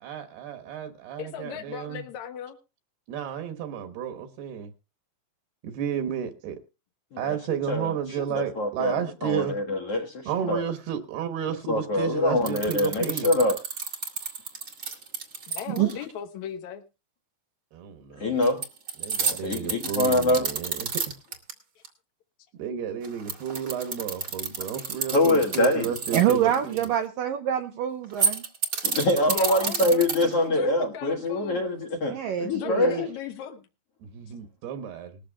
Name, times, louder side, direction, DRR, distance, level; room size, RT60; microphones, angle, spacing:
voice 1, 0.0-2.0 3.1-4.7 5.6-6.6 7.2-9.6 10.3-13.3 17.7-18.3 19.0-21.0 22.6-26.9 34.0-35.2, right 8 dB, 70° right, 3.0 m, -32 dB
voice 2, 1.2-2.6 15.5-16.8 29.2-30.1 30.4-31.7 32.5-33.6, left 9 dB, 80° left, 1.7 m, -37 dB
voice 3, 7.1-7.9 8.4-10.6 11.7-13.6 18.2-18.6 19.4-20.5 25.1-25.9 28.8-32.2 32.4-33.1, left 1 dB, 60° left, 1.6 m, -24 dB
sound 1, 12.5-15.9 18.4-21.5 21.8-21.9 23.0-26.8 28.0-30.4, right 5 dB, 50° right, 1.3 m, -30 dB
voice 4, 15.7-16.0 26.1-28.4 32.1-33.0, right 11 dB, 90° right, 2.0 m, -26 dB
20.0 x 14.0 x 2.3 m
omnidirectional pair, 5.0 m